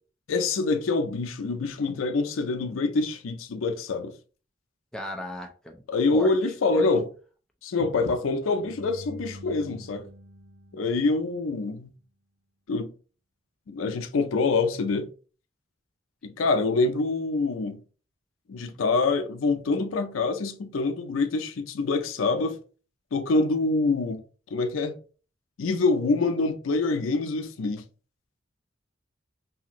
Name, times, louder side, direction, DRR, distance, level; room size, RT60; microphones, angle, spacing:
voice 1, 0.3-4.2 5.9-7.1 7.6-10.1 10.7-11.9 12.7-12.9 13.7-15.1 16.2-17.8 18.5-22.6 23.1-24.2 24.5-25.0 25.6-27.8, left 3 dB, 90° left, 0.5 m, -25 dB
voice 2, 4.9-5.8 6.1-6.3 6.7-6.9, left 1 dB, 5° left, 0.4 m, -35 dB
sound 1, 8.5-11.7, equal, 70° right, 0.6 m, -46 dB
2.7 x 2.5 x 2.9 m
head